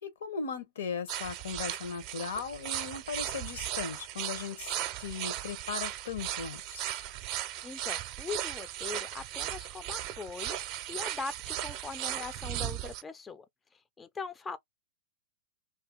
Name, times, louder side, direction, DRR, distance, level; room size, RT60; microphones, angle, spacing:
voice 1, 0.0-7.0, left 5 dB, 70° left, 0.9 m, -38 dB
sound 1, 1.1-13.0, right 13 dB, 45° right, 0.6 m, -37 dB
voice 2, 7.6-10.6 10.9-13.5 14.0-14.6, left 4 dB, 15° left, 0.4 m, -41 dB
2.8 x 2.6 x 3.7 m
hypercardioid pair, 110°, 0 cm